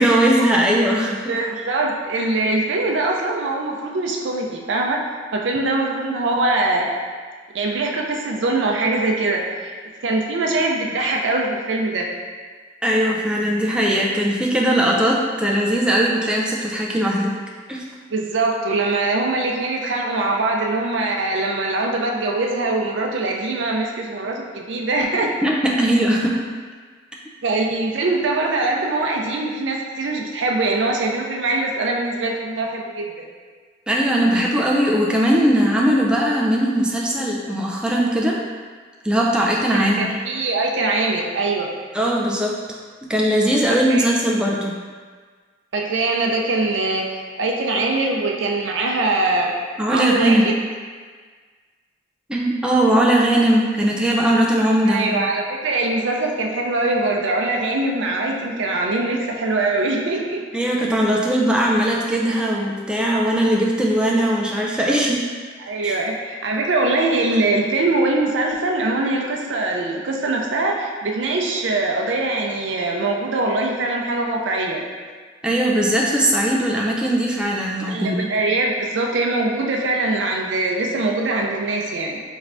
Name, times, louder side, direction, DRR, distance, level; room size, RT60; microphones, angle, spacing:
voice 1, 0.0-1.3 12.8-17.3 17.7-17.8 25.2-26.4 33.9-38.4 39.0-40.1 41.9-42.6 43.1-44.7 49.8-50.5 52.3-55.0 60.5-65.2 65.8-66.0 75.4-78.2, right 1 dB, 5° right, -3 dB, 0.3 m, -19 dB
voice 2, 1.3-5.0 5.3-6.9 7.5-9.8 10.0-12.1 18.1-25.3 27.4-33.3 39.7-41.7 43.9-44.1 45.7-47.1 47.4-49.5 49.9-50.4 54.9-60.4 65.6-74.8 77.9-82.2, right 2 dB, 80° right, 0 dB, 0.5 m, -22 dB
4.4 x 3.1 x 2.6 m, 1.5 s
head